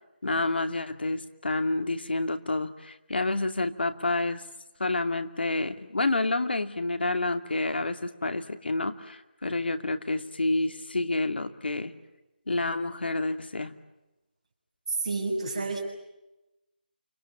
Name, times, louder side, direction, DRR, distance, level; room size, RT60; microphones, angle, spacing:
voice 1, 0.2-4.4 4.8-11.9 12.5-13.8, left 2 dB, 80° left, 8 dB, 2.6 m, -29 dB
voice 2, 14.9-15.8, right 3 dB, 35° right, 1 dB, 7.9 m, -29 dB
29.5 x 27.5 x 7.4 m, 0.96 s
figure-of-eight pair, 175°, 5 cm